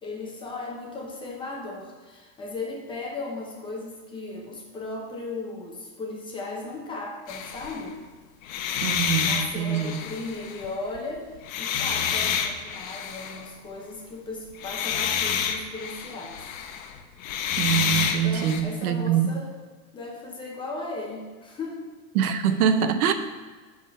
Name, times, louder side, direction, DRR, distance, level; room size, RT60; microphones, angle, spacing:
voice 1, 0.0-8.0 8.9-16.5 18.2-19.5 19.9-21.8 22.3-22.4, left 2 dB, 10° left, -1 dB, 0.8 m, -36 dB
sound 1, 7.3-7.9 8.4-11.0 11.4-13.5 14.5-18.6, left 8 dB, 65° left, 0.9 m, -28 dB
voice 2, 8.8-10.0 17.6-19.4 22.1-23.1, right 8 dB, 80° right, 10 dB, 0.8 m, -24 dB
8.8 x 3.7 x 5.3 m, 1.4 s
supercardioid pair, 160°, 44 cm